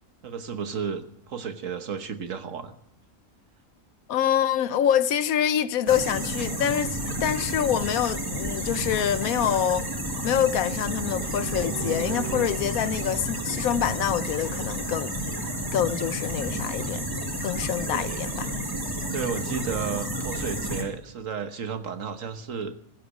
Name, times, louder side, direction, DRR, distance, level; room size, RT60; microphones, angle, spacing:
voice 1, 0.2-2.8 17.9-18.2 19.1-22.7, right 6 dB, 65° right, 1.5 m, -33 dB
voice 2, 4.1-9.9 10.2-15.1 15.7-17.0 17.4-18.5, left 10 dB, 80° left, 1.2 m, -26 dB
sound 1, 5.9-20.8, right 1 dB, 15° right, 1.9 m, -31 dB
sound 2, 11.1-14.8, right 6 dB, 40° right, 1.1 m, -39 dB
15.0 x 8.3 x 10.0 m
omnidirectional pair, 1.5 m